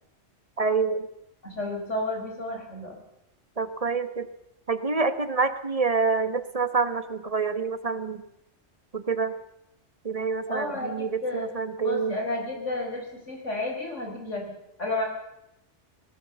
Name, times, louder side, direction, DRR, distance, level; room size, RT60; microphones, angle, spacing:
voice 1, 0.6-1.1 3.6-4.3 4.7-8.2 8.9-9.3 10.0-12.1, right 4 dB, 30° right, 12 dB, 1.2 m, -27 dB
voice 2, 1.4-3.0 10.5-11.5 11.8-14.4 14.8-15.1, left 2 dB, 80° left, 2 dB, 4.8 m, -31 dB
20.5 x 19.0 x 6.9 m, 0.85 s
omnidirectional pair, 1.2 m